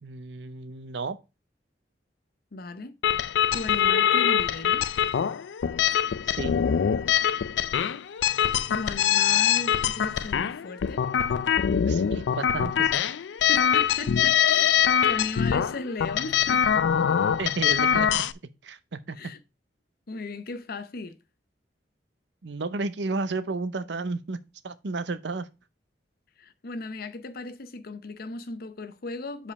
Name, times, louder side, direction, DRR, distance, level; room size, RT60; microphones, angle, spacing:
voice 1, 0.0-1.2 6.2-6.6 11.9-13.0 17.4-18.2 18.6-19.2 22.4-24.4 24.6-25.5, right 3 dB, 75° right, 0.6 m, -32 dB
voice 2, 2.5-3.0 3.5-4.8 8.7-11.0 13.5-14.7 15.0-16.6 19.1-19.4 20.1-21.2 26.4-29.5, left 3 dB, 60° left, 0.7 m, -36 dB
sound 1, 3.0-18.3, left 8 dB, 85° left, 0.4 m, -24 dB
5.2 x 5.1 x 5.3 m
head